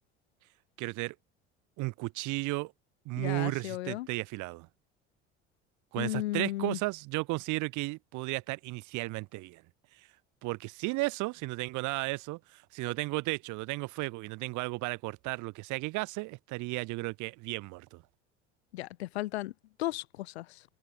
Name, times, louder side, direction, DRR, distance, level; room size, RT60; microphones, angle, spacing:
voice 1, 0.8-1.2 1.8-2.7 3.1-4.7 5.9-9.6 10.0-10.1 10.4-18.0, right 23 dB, 65° right, 4.0 m, -34 dB
voice 2, 3.2-4.1 6.0-6.8 18.7-19.5 19.8-20.6, left 17 dB, 80° left, 1.4 m, -35 dB
open air
hypercardioid pair, 65°, 32 cm